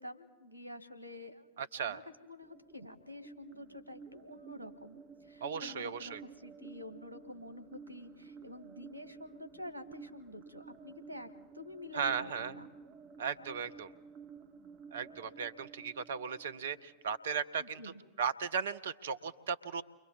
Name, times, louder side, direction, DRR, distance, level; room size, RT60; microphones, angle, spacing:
voice 1, 0.0-1.5 1.8-11.3 11.5-12.7 17.6-18.0, left 1 dB, 90° left, 11 dB, 1.5 m, -48 dB
voice 2, 1.6-2.0 5.4-6.2 11.9-12.5 13.2-13.9 14.9-17.9 18.2-19.8, right 6 dB, 65° right, 12 dB, 0.8 m, -36 dB
sound 1, 2.4-17.4, right 5 dB, 40° right, 1.2 m, -53 dB
29.5 x 23.5 x 4.1 m, 1.3 s
figure-of-eight pair, 90°, 0 cm